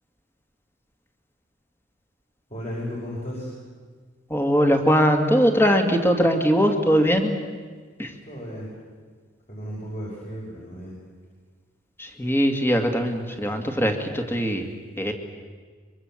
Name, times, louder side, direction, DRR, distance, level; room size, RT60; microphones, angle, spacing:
voice 1, 2.5-3.5 8.2-8.7 9.5-11.0, equal, 35° left, -4 dB, 5.7 m, -34 dB
voice 2, 4.3-7.3 8.0-8.1 12.0-14.7 15.0-15.1, equal, 15° left, 4 dB, 2.4 m, -21 dB
24.0 x 24.0 x 7.6 m, 1.5 s
head